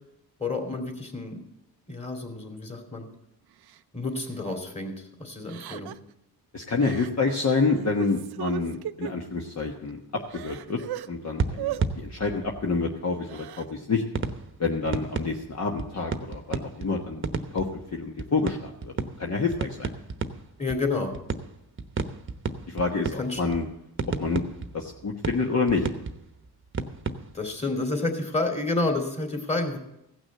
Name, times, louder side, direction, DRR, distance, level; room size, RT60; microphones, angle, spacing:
voice 1, 0.4-1.4 1.9-3.1 3.9-5.9 20.6-21.1 23.2-23.4 27.3-29.8, left 3 dB, 15° left, 3 dB, 2.8 m, -29 dB
Crying sobbing, 3.7-3.8 4.3-4.5 5.5-6.1 6.8-7.1 7.5-9.1 9.7-9.8 10.1-11.1 11.6-11.8 13.1-13.7, right 14 dB, 80° right, 0.6 m, -36 dB
voice 2, 6.5-10.8 11.1-14.0 14.6-19.9 22.7-23.7 24.2-24.4 24.7-25.9, left 4 dB, 45° left, 0 dB, 1.3 m, -28 dB
sound 1, 10.2-10.3 11.4-13.0 14.1-27.5, right 4 dB, 30° right, 1.0 m, -33 dB
16.0 x 6.1 x 7.6 m, 0.84 s
cardioid pair, 90°, 38 cm